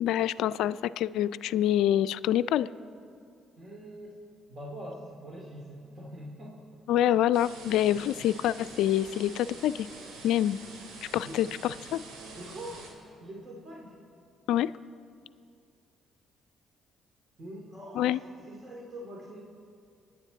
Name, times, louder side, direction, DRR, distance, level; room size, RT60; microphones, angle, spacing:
voice 1, 0.0-2.7 6.9-9.9 10.2-10.6 11.1-12.0 14.5-14.7 18.0-18.2, left 12 dB, 75° left, 17 dB, 0.3 m, -26 dB
voice 2, 3.6-4.2 4.5-6.8 7.7-8.0 11.2-11.4 12.3-12.8 13.2-13.9 17.4-18.2 18.4-19.4, equal, 40° right, -2 dB, 2.4 m, -43 dB
sound 1, 7.3-12.9, right 3 dB, 80° right, 3.0 m, -46 dB
25.0 x 9.9 x 4.0 m, 2.4 s
hypercardioid pair, 55°, 0 cm